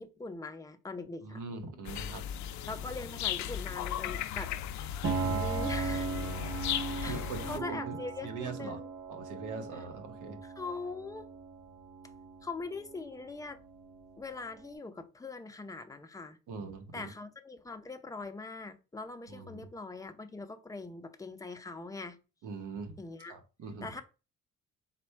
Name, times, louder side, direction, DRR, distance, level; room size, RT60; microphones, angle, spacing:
voice 1, 0.0-1.4 2.7-5.0 5.4-6.1 7.0-7.2 7.5-8.9 10.4-11.3 12.4-13.6 14.2-16.4 16.9-22.2 23.0-23.3 23.8-24.0, left 3 dB, 10° left, 0.5 m, -42 dB
voice 2, 1.2-2.4 5.2-5.5 7.0-8.0 8.2-8.8 9.1-10.4 16.5-17.1 19.3-19.7 22.4-23.0 23.3-23.9, right 4 dB, 85° right, 1.0 m, -42 dB
sound 1, 1.9-7.6, left 10 dB, 70° left, 0.5 m, -36 dB
Piano, 5.0-14.6, right 4 dB, 50° right, 1.1 m, -38 dB
4.2 x 2.2 x 4.4 m
cardioid pair, 90°, 30 cm